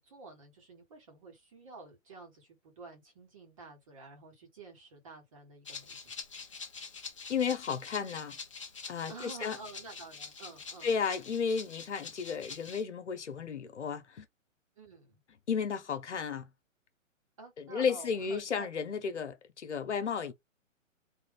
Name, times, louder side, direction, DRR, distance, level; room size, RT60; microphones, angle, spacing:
voice 1, 0.0-6.2 9.1-11.0 14.8-15.2 17.4-18.7, right 3 dB, 25° right, 1.4 m, -50 dB
Rattle (instrument), 5.6-12.8, left 5 dB, 25° left, 0.7 m, -46 dB
voice 2, 7.3-8.4 8.9-9.6 10.8-14.3 15.5-16.5 17.6-20.3, left 6 dB, 60° left, 1.1 m, -33 dB
3.7 x 2.5 x 3.5 m
hypercardioid pair, 175°, 40 cm